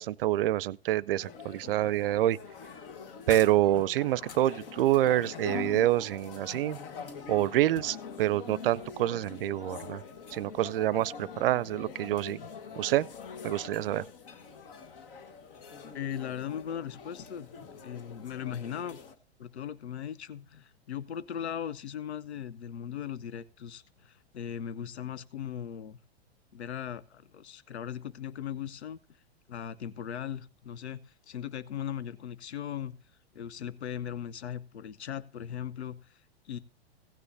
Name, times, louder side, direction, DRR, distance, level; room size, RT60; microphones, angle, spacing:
voice 1, 0.0-2.4 3.3-6.8 7.3-10.0 10.3-12.4 12.8-13.1 13.4-14.0, right 14 dB, 60° right, 0.5 m, -27 dB
sound 1, 1.2-19.1, left 6 dB, 55° left, 1.4 m, -44 dB
voice 2, 15.9-19.0 19.4-26.0 26.5-29.0 29.5-32.9 33.3-36.6, left 9 dB, 80° left, 0.6 m, -38 dB
16.5 x 9.5 x 2.6 m
figure-of-eight pair, 105°, 33 cm